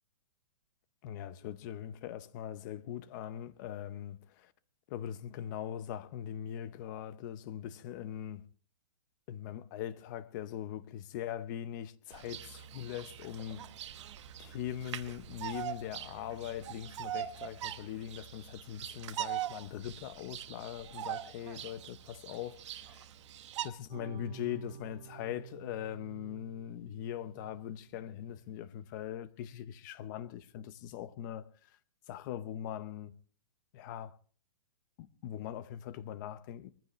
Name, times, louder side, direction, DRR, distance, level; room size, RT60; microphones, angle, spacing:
voice 1, 1.0-4.5 4.9-8.4 9.3-13.9 14.4-23.1 23.6-31.8 32.1-33.1 33.7-34.2 35.0-36.7, left 10 dB, 30° left, 0.8 m, -41 dB
Bird vocalization bird call bird song, 12.1-23.7, right 11 dB, 45° right, 1.1 m, -42 dB
sound 1, 23.9-28.7, right 11 dB, 25° right, 1.4 m, -52 dB
22.0 x 15.0 x 3.1 m
hypercardioid pair, 160°, 20 cm